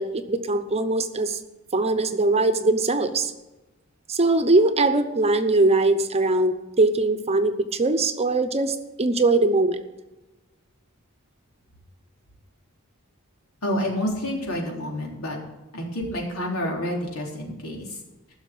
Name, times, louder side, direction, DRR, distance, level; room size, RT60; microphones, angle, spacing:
voice 1, 0.0-1.4 1.7-3.3 4.1-9.8, right 2 dB, 30° right, 9 dB, 0.9 m, -21 dB
voice 2, 13.6-15.4 15.7-18.0, left 1 dB, 80° left, -1 dB, 3.7 m, -29 dB
15.0 x 6.5 x 8.6 m, 1.1 s
head